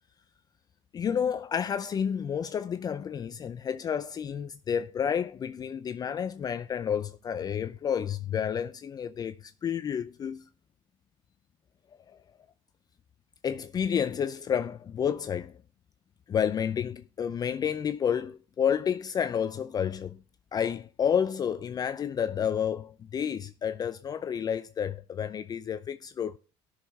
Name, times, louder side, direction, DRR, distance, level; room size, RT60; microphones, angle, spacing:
voice 1, 0.9-10.4 12.1-12.2 13.4-15.6 16.3-20.2 20.5-26.4, left 8 dB, 35° left, 0.5 m, -30 dB
16.0 x 6.4 x 3.6 m
cardioid pair, 110°, 12 cm